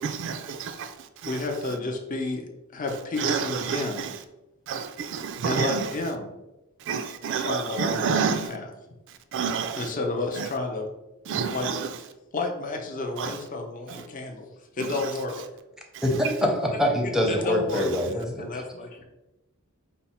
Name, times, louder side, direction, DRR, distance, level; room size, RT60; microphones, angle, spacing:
voice 1, 0.0-0.9 1.2-1.4 3.2-4.2 4.7-5.9 6.9-8.5 9.3-9.9 10.3-10.5 11.3-11.9 13.2-13.4 13.9-14.0 14.9-15.1 15.9-16.0 17.7-17.8, right 6 dB, 60° right, 0.3 m, -29 dB
voice 2, 1.3-4.0 5.4-6.3 7.3-8.7 9.8-10.9 11.4-11.7 12.3-14.5 14.7-15.4 17.0-17.9 18.2-19.0, left 2 dB, 40° left, 0.6 m, -31 dB
voice 3, 16.4-18.6, left 1 dB, ahead, 0.6 m, -25 dB
5.4 x 2.1 x 4.2 m
head